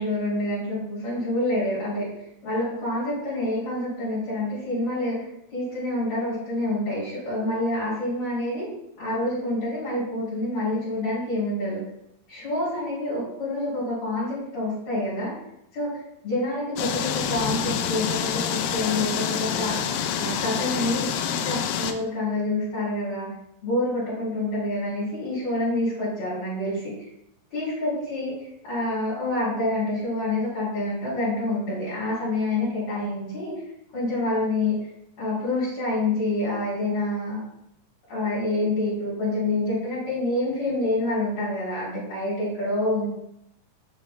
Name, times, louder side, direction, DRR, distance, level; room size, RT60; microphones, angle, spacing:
voice 1, 0.0-2.1 2.4-5.2 5.5-8.7 9.0-11.9 12.3-15.3 15.7-16.0 16.2-19.9 20.2-21.2 21.4-23.4 23.6-26.9 27.5-28.3 28.6-33.5 33.9-34.8 35.2-37.4 38.1-43.1, left 1 dB, 50° left, -10 dB, 4.3 m, -27 dB
sound 1, 16.8-21.9, left 8 dB, 85° left, 2.4 m, -27 dB
10.5 x 7.3 x 2.3 m, 0.78 s
omnidirectional pair, 4.1 m